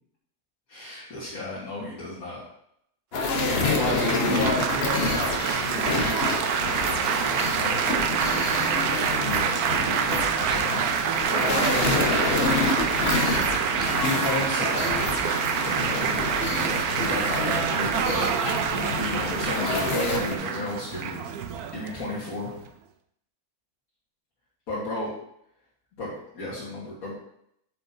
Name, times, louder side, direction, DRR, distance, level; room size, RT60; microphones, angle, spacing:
voice 1, 0.7-2.4 3.4-6.1 6.7-8.1 9.2-10.9 11.3-12.9 14.0-15.4 15.6-16.1 16.6-18.3 19.0-21.3 21.7-22.5 24.7-25.1 26.0-27.2, left 2 dB, 70° left, -7 dB, 2.1 m, -33 dB
sound 1, 3.1-20.3, left 3 dB, 50° left, 1.1 m, -28 dB
Laughter / Applause / Chatter, 3.5-22.7, right 7 dB, 85° right, 1.1 m, -27 dB
8.1 x 6.8 x 2.7 m, 0.73 s
omnidirectional pair, 1.6 m